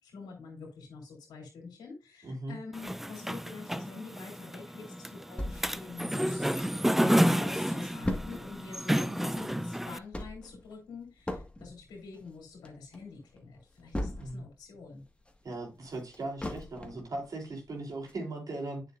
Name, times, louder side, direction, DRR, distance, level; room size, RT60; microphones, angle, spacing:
voice 1, 0.0-6.7 7.0-15.0, left 4 dB, 90° left, 3.2 m, -46 dB
voice 2, 2.2-2.6 7.0-7.4 14.2-14.4 15.4-18.8, right 2 dB, 65° right, 3.5 m, -38 dB
sound 1, 2.7-10.0, equal, 5° right, 0.5 m, -30 dB
sound 2, 5.4-6.9 7.3-7.4 7.6-14.6 15.0-17.1 17.6-17.7 18.1-18.2, left 1 dB, 15° left, 1.8 m, -38 dB
8.5 x 6.8 x 2.6 m
supercardioid pair, 40°, 7 cm